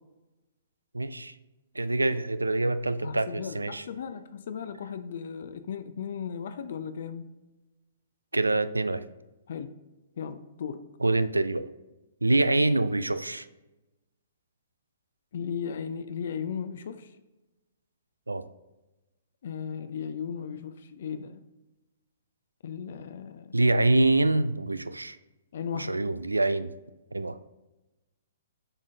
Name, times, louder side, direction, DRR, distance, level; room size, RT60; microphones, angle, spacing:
voice 1, 0.9-1.3 1.7-3.8 8.3-9.0 11.0-11.6 12.2-13.4 18.3-18.4 23.5-25.2 25.7-26.7 27.1-27.4, right 2 dB, 85° right, 14 dB, 0.3 m, -25 dB
voice 2, 3.0-7.3 9.5-9.7 10.2-10.8 15.3-17.1 19.4-21.4 22.6-23.6 25.5-26.0, left 7 dB, 55° left, 11 dB, 0.4 m, -36 dB
7.1 x 4.9 x 2.7 m, 1.0 s
figure-of-eight pair, 120°, 0 cm